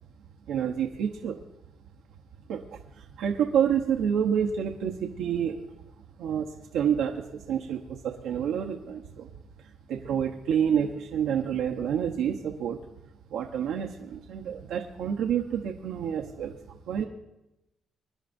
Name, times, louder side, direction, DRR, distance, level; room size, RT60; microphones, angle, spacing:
voice 1, 0.5-1.4 2.5-5.6 6.2-9.3 9.9-12.8 13.3-17.1, right 8 dB, 85° right, 0 dB, 0.9 m, -28 dB
25.5 x 11.0 x 2.6 m, 0.93 s
cardioid pair, 90°, 0 cm